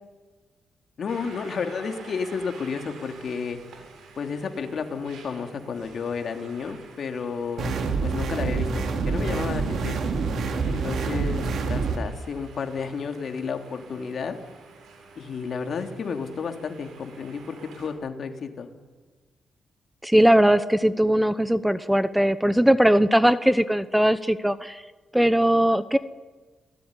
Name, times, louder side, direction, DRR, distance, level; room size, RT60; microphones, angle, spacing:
voice 1, 1.0-3.6 4.2-7.7 8.0-10.0 10.6-14.4 15.2-18.7, left 5 dB, 60° left, 5 dB, 3.3 m, -32 dB
sound 1, 1.1-17.9, right 4 dB, 90° right, 7.8 m, -49 dB
sound 2, 7.6-12.0, right 4 dB, 70° right, 3.4 m, -26 dB
voice 2, 20.0-24.8 25.1-26.0, equal, 5° right, 13 dB, 0.9 m, -20 dB
29.0 x 18.5 x 10.0 m, 1.3 s
cardioid pair, 105°, 0 cm